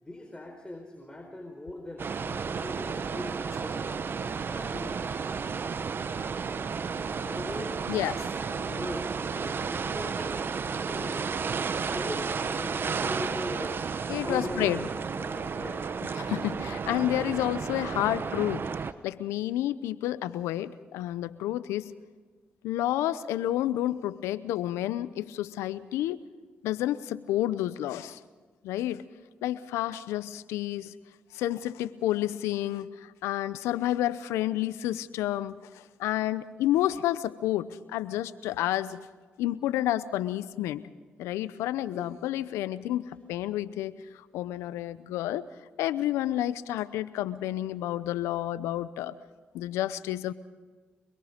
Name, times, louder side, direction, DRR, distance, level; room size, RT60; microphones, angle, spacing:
voice 1, 0.0-4.1 4.5-5.0 7.2-7.8 8.2-11.3 11.8-13.8 14.2-15.9 41.9-42.1, left 1 dB, 20° left, 3 dB, 4.3 m, -40 dB
sound 1, 2.0-18.9, right 5 dB, 50° right, 1.1 m, -32 dB
voice 2, 7.9-8.3 14.1-14.9 16.1-18.7 19.0-21.9 22.6-26.2 26.6-28.2 28.6-29.0 29.4-30.9 31.3-39.1 39.4-40.9 41.2-45.5 45.8-49.1 49.5-50.3, left 13 dB, 85° left, 16 dB, 0.7 m, -30 dB
26.0 x 21.5 x 5.2 m, 1.4 s
supercardioid pair, 50°, 5 cm